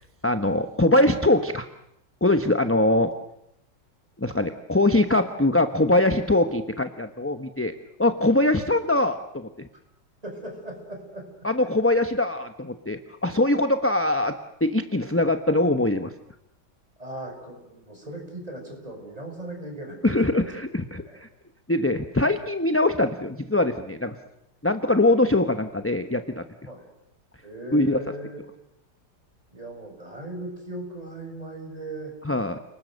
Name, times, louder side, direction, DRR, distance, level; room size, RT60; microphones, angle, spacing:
voice 1, 0.2-1.7 2.2-3.1 4.2-7.7 8.0-9.7 11.4-14.3 14.6-16.1 20.0-21.3 21.7-24.2 24.6-26.4 27.7-28.0 32.2-32.6, left 2 dB, 10° left, 8 dB, 0.8 m, -22 dB
voice 2, 10.2-11.3 17.0-20.5 21.0-21.2 26.7-26.8 27.4-28.4 29.5-32.1, right 1 dB, 20° right, 2 dB, 6.9 m, -38 dB
29.5 x 20.0 x 7.9 m, 0.80 s
omnidirectional pair, 2.0 m